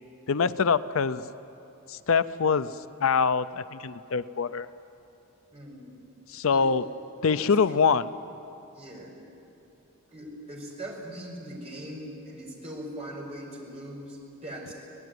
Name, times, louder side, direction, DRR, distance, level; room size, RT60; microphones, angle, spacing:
voice 1, 0.3-1.2 1.9-2.8 3.0-4.7 6.3-6.8 7.2-8.1, left 5 dB, 65° left, 14 dB, 0.5 m, -24 dB
voice 2, 5.5-6.0 6.5-6.7 7.3-7.8 8.7-9.1 10.1-14.7, right 1 dB, 30° right, -2 dB, 5.6 m, -40 dB
25.5 x 18.5 x 9.5 m, 2.9 s
head